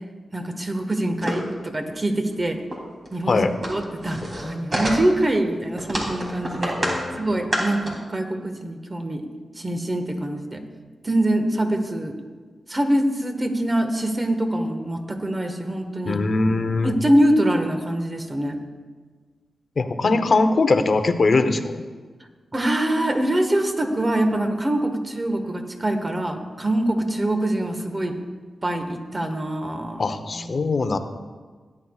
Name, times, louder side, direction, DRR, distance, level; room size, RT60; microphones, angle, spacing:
voice 1, 0.3-2.6 3.1-6.8 7.1-9.2 9.6-10.6 11.0-12.2 12.7-16.2 16.8-18.6 20.1-20.2 22.5-28.1 28.6-30.5, right 1 dB, 30° right, 5 dB, 1.5 m, -24 dB
sound 1, 1.2-1.5 2.0-2.1 2.3-2.4 2.7-2.8 3.1-5.3 5.8-7.0 7.3-7.9, right 1 dB, 50° right, 3.1 m, -27 dB
voice 2, 6.8-7.3 16.0-16.9 19.8-21.8 30.0-31.0, left 3 dB, 55° left, 9 dB, 0.8 m, -21 dB
17.0 x 9.9 x 2.4 m, 1.5 s
cardioid pair, 55°, 0 cm